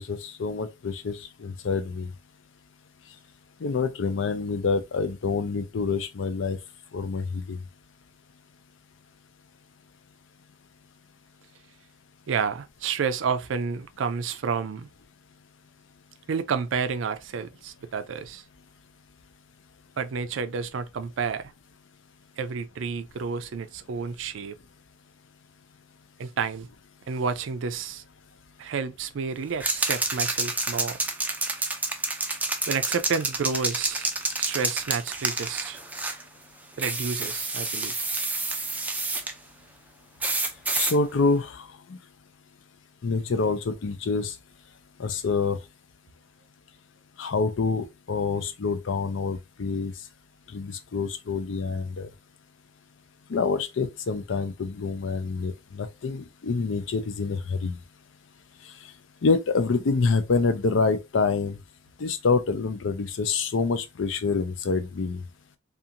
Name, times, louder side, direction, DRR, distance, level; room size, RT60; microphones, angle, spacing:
voice 1, 0.0-2.1 3.6-6.6 6.9-7.6 40.7-41.6 43.0-44.3 45.0-45.6 47.2-49.9 50.5-52.1 53.3-57.8 59.2-61.6 62.0-65.2, left 4 dB, 75° left, 0.5 m, -26 dB
voice 2, 12.3-14.9 16.3-18.4 20.0-21.5 22.4-24.6 26.2-26.7 27.1-28.0 28.6-31.0 32.7-34.1 34.4-35.8 36.8-38.0, right 5 dB, 75° right, 0.4 m, -30 dB
sound 1, 29.6-36.2 36.8-39.3 40.2-41.0, right 3 dB, 10° right, 0.3 m, -29 dB
2.5 x 2.4 x 2.8 m
head